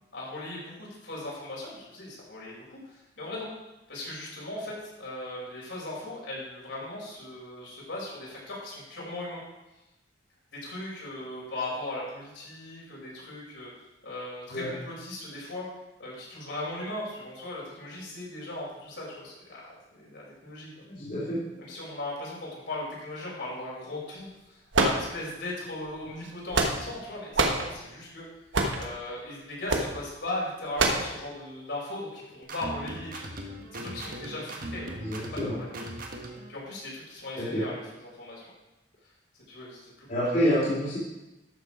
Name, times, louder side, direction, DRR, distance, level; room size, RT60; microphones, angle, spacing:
voice 1, 0.1-3.5 3.9-9.4 10.5-13.7 14.0-15.7 16.0-20.8 21.6-28.3 28.8-33.3 33.7-35.2 35.5-35.8 36.5-38.5 39.5-39.9, left 1 dB, 70° left, -5 dB, 4.5 m, -38 dB
voice 2, 20.9-21.4 35.0-35.6 37.4-37.6 40.1-41.0, equal, 45° left, -8 dB, 3.1 m, -28 dB
sound 1, 24.7-25.5 26.2-27.0 27.4-27.7 28.5-28.9 29.7-29.9 30.8-31.1, right 3 dB, 85° right, 1.2 m, -25 dB
sound 2, 32.4-36.5, right 1 dB, 50° right, 1.4 m, -39 dB
12.5 x 6.7 x 4.9 m, 0.98 s
head